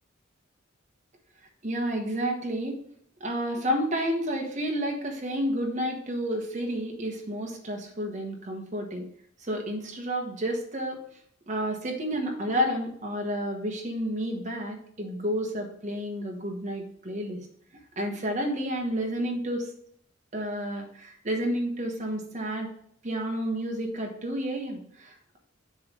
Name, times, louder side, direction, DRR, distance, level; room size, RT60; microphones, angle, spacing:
voice 1, 1.6-2.8 3.2-9.0 9.4-11.0 11.5-17.4 18.0-19.7 20.3-22.7 23.0-25.4, equal, 35° right, 1 dB, 1.2 m, -30 dB
6.9 x 3.2 x 5.2 m, 0.65 s
head